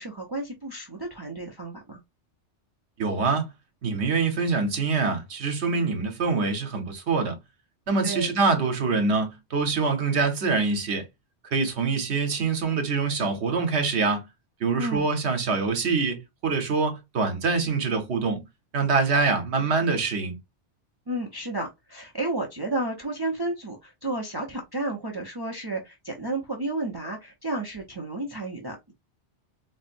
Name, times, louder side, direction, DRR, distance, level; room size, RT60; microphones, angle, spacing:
voice 1, 0.0-2.0 8.0-8.3 14.8-15.1 21.1-28.9, right 2 dB, 25° right, 0.5 m, -32 dB
voice 2, 3.0-3.5 3.8-7.4 7.9-11.1 11.5-14.3 14.6-18.4 18.7-20.4, right 4 dB, 70° right, 1.1 m, -25 dB
4.2 x 2.1 x 2.5 m
omnidirectional pair, 1.2 m